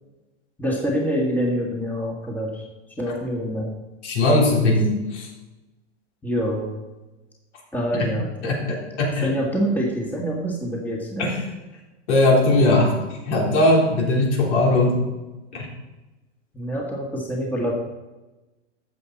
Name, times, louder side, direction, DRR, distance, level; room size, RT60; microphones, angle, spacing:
voice 1, 0.6-2.7 3.0-3.7 6.2-6.7 7.7-8.3 9.2-11.3 16.5-17.7, equal, 5° left, -2 dB, 1.9 m, -25 dB
voice 2, 4.0-5.3 7.9-8.1 8.4-9.3 11.2-11.5 12.1-12.9 13.3-15.0 15.5-15.7, left 2 dB, 70° left, -1 dB, 4.0 m, -19 dB
13.5 x 8.1 x 4.2 m, 1.1 s
hypercardioid pair, 135°, 36 cm